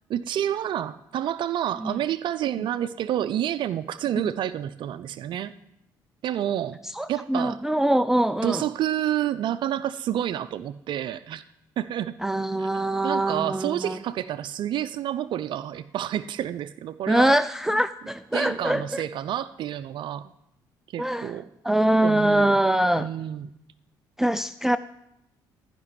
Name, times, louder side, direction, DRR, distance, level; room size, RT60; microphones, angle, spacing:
voice 1, 0.1-5.5 6.2-6.8 7.1-7.6 8.4-11.4 11.8-12.1 12.6-12.7 13.0-17.4 18.3-20.3 20.9-21.5 22.0-22.6 23.0-23.5, right 11 dB, 65° right, 13 dB, 0.6 m, -29 dB
voice 2, 7.0-8.6 12.2-14.0 17.1-19.0 21.0-21.4 21.6-23.1 24.2-24.8, right 1 dB, 5° right, 12 dB, 0.4 m, -23 dB
14.0 x 6.0 x 9.8 m, 0.81 s
supercardioid pair, 75°, 9 cm